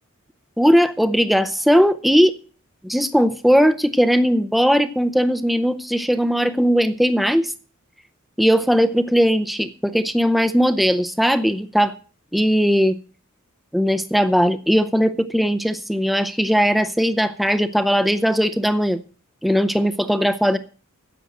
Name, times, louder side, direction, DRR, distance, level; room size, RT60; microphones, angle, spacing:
voice 1, 0.6-2.3 2.8-7.5 8.4-11.9 12.3-13.0 13.7-19.0 19.4-20.6, equal, ahead, 9 dB, 0.6 m, -18 dB
10.5 x 7.7 x 7.8 m, 0.40 s
head